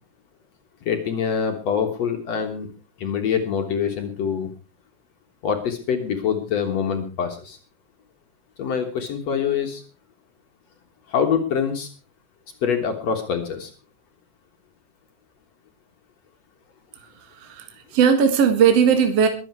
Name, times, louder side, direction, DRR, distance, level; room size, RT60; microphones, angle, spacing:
voice 1, 0.9-2.7 3.0-4.5 5.4-7.6 8.6-9.8 11.1-11.9 12.6-13.7, left 7 dB, 65° left, 4 dB, 2.6 m, -25 dB
voice 2, 17.0-19.3, right 7 dB, 60° right, 6 dB, 2.6 m, -19 dB
22.0 x 8.6 x 4.6 m, 0.36 s
omnidirectional pair, 3.4 m